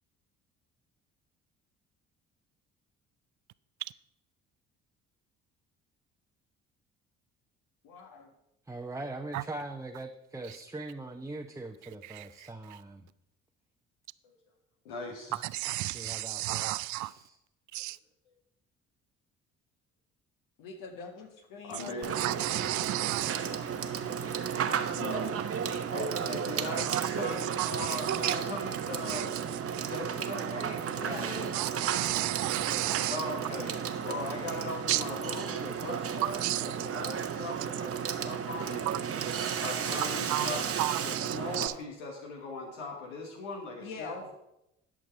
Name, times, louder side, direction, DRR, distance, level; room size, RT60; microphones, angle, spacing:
voice 1, 7.8-8.3 20.6-22.4 30.9-31.3 43.8-44.3, left 4 dB, 70° left, 1.8 m, -44 dB
voice 2, 8.7-13.1 15.2-15.3 15.8-17.4, right 2 dB, 10° right, 0.8 m, -41 dB
voice 3, 12.1-12.5 15.4-17.1 17.7-18.0 22.1-23.5 26.8-27.0 27.4-28.4 29.1-29.4 29.7-29.9 31.5-33.2 34.9-35.0 36.2-36.9 40.3-40.5 40.8-41.7, right 17 dB, 60° right, 0.5 m, -32 dB
voice 4, 14.8-15.4 21.6-22.2 25.0-25.3 25.9-29.4 29.9-31.5 33.1-33.7 34.0-38.9 39.6-40.7 41.0-44.2, left 2 dB, 85° left, 1.4 m, -39 dB
Water / Water tap faucet / Sink (filling or washing), 22.0-41.7, right 7 dB, 40° right, 1.0 m, -33 dB
11.5 x 6.4 x 4.4 m
hypercardioid pair, 55°, 34 cm